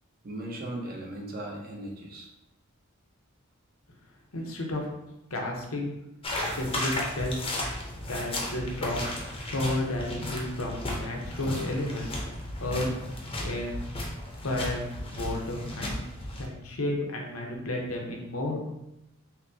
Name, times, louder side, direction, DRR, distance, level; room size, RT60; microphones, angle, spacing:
voice 1, 0.2-2.3, right 1 dB, 45° right, -1 dB, 0.8 m, -37 dB
voice 2, 4.3-4.9 5.3-6.0 6.4-7.5 8.1-9.1 9.5-12.1 12.6-12.9 13.4-13.8 14.4-16.0 16.4-18.7, left 1 dB, 75° left, 0 dB, 0.8 m, -32 dB
sound 1, 6.2-16.5, left 1 dB, 25° left, 0.7 m, -34 dB
5.7 x 2.1 x 2.7 m, 0.86 s
head